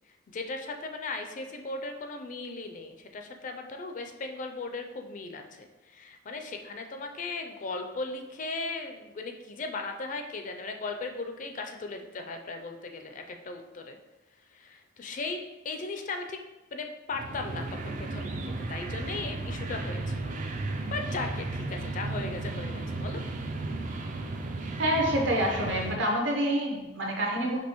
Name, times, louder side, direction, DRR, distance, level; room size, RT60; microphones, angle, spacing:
voice 1, 0.3-14.0 14.5-16.4 16.7-20.4 20.9-23.2, left 3 dB, 40° left, 5 dB, 0.4 m, -37 dB
sound 1, 17.1-26.0, right 2 dB, 40° right, 0.4 m, -34 dB
voice 2, 24.8-27.6, equal, 65° right, -1 dB, 0.9 m, -27 dB
5.2 x 3.0 x 3.0 m, 1.1 s
head